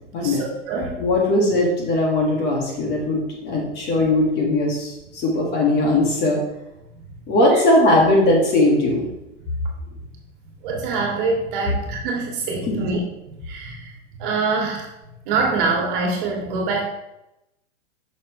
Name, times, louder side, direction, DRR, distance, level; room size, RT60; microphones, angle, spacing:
voice 1, 0.2-1.0 6.9-7.0 7.5-7.6 10.6-13.0 13.3-14.9 15.3-16.8, right 4 dB, 45° right, 0 dB, 2.0 m, -25 dB
voice 2, 1.0-6.4 7.3-9.1 12.7-12.8, left 1 dB, 30° left, -2 dB, 1.9 m, -19 dB
8.6 x 6.1 x 3.2 m, 0.90 s
hypercardioid pair, 140°, 37 cm